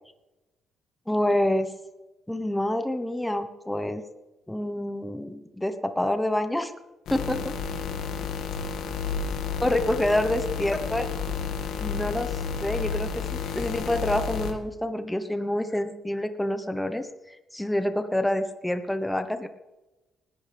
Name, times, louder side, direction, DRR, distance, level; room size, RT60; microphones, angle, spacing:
voice 1, 1.1-1.7 2.3-4.0 4.5-6.7 7.1-7.5 9.6-11.1 11.8-19.5, left 1 dB, 5° left, 8 dB, 1.1 m, -27 dB
sound 1, 7.1-14.5, left 6 dB, 80° left, 2.0 m, -31 dB
19.5 x 14.0 x 3.5 m, 1.1 s
cardioid pair, 90°, 0 cm